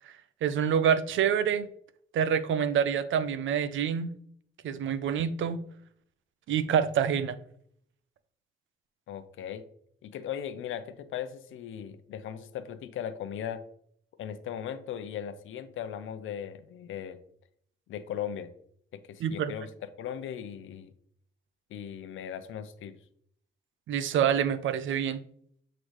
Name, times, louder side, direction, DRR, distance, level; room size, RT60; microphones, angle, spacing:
voice 1, 0.4-1.7 2.1-4.1 4.6-5.6 6.5-7.4 19.2-19.5 23.9-25.2, right 8 dB, 70° right, 0.6 m, -26 dB
voice 2, 9.1-9.7 10.0-13.6 14.2-17.2 17.9-18.5 18.9-19.7 20.0-20.9 21.7-23.0, left 9 dB, 75° left, 0.6 m, -38 dB
7.8 x 3.9 x 3.2 m
cardioid pair, 80°, 21 cm